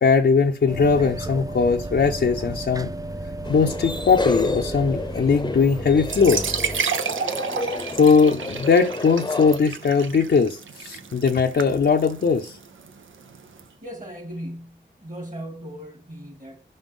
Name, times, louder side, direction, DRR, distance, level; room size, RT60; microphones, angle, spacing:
voice 1, 0.0-2.9 3.5-6.5 7.9-12.6, left 5 dB, 60° left, 0.6 m, -19 dB
sound 1, 0.7-6.8, right 2 dB, 20° right, 0.4 m, -33 dB
sound 2, 3.4-9.6, left 2 dB, 20° left, 0.7 m, -31 dB
sound 3, 6.0-13.6, right 6 dB, 85° right, 0.6 m, -31 dB
voice 2, 13.8-16.6, equal, 40° right, 2.4 m, -37 dB
5.4 x 5.3 x 3.6 m
cardioid pair, 45°, 20 cm